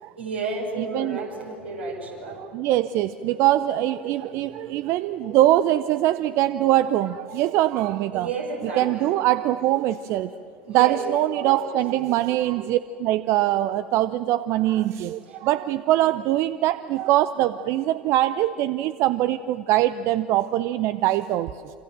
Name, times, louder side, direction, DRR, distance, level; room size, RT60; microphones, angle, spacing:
voice 1, 0.2-2.4 8.1-9.2 10.6-11.0 11.3-11.7 15.3-15.4, right 3 dB, 85° right, -2 dB, 5.7 m, -32 dB
voice 2, 0.8-1.3 2.2-8.3 8.6-10.4 10.7-21.8, right 14 dB, 55° right, 13 dB, 0.6 m, -23 dB
27.5 x 26.0 x 7.5 m, 2.5 s
figure-of-eight pair, 70°, 6 cm